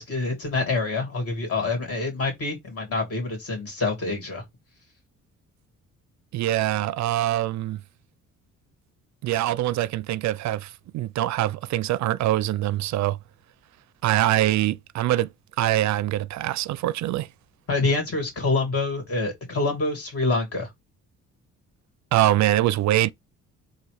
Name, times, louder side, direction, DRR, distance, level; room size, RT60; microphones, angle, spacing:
voice 1, 0.1-4.4 17.7-20.7, left 3 dB, 50° left, 2.5 m, -26 dB
voice 2, 6.3-7.8 9.2-13.2 14.0-15.3 15.6-17.3 22.1-23.1, right 14 dB, 65° right, 0.4 m, -23 dB
4.1 x 2.5 x 4.8 m
cardioid pair, 90°, 30 cm